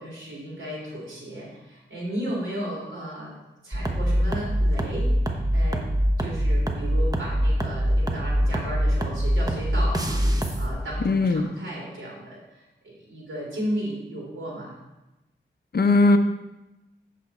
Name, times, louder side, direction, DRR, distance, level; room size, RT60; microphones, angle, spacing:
voice 1, 0.0-3.3 3.6-5.8 6.2-14.8, equal, 70° right, -5 dB, 3.4 m, -34 dB
sound 1, 3.7-10.7, equal, 20° right, 0.9 m, -23 dB
voice 2, 11.0-11.5 15.7-16.2, left 2 dB, 50° left, 7 dB, 0.7 m, -18 dB
8.4 x 6.7 x 4.2 m, 1.0 s
wide cardioid pair, 95°, 21 cm